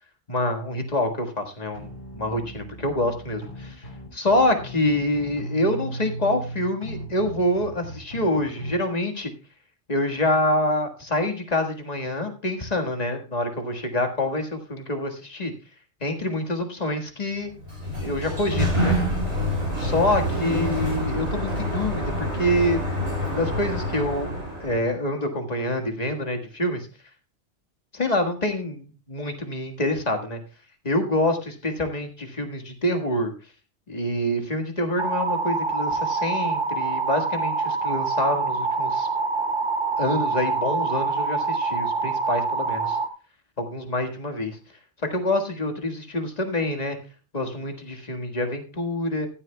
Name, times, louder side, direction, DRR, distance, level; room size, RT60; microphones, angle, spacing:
voice 1, 0.3-1.9 2.1-3.9 4.1-9.3 9.9-15.5 16.0-17.5 18.0-18.9 19.8-22.8 23.3-24.3 24.6-26.9 27.9-30.4 30.8-33.3 33.9-39.1 40.0-43.0 43.6-44.6 45.0-47.0 47.3-49.3, left 1 dB, 35° left, 4 dB, 1.7 m, -26 dB
sound 1, 1.7-8.7, right 1 dB, 65° left, 4.1 m, -37 dB
Sliding door, 17.5-24.9, equal, 75° right, 6.5 m, -27 dB
sound 2, 35.0-43.1, right 4 dB, 50° right, 1.1 m, -25 dB
15.0 x 12.0 x 2.2 m, 0.35 s
omnidirectional pair, 1.2 m